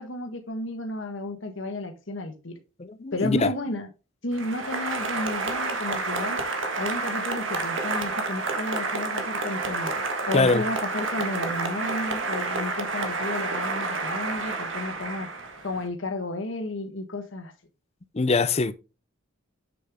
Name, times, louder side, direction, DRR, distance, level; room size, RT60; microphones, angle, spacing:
voice 1, 0.0-2.5 3.1-3.9 4.2-6.4 6.7-9.9 10.3-15.3 15.6-17.5, left 2 dB, 65° left, 1.4 m, -32 dB
voice 2, 2.8-3.5 10.3-10.6 18.1-18.7, left 3 dB, 30° left, 0.5 m, -23 dB
Applause, 4.3-15.8, right 3 dB, 65° right, 1.5 m, -29 dB
7.7 x 6.7 x 3.6 m
head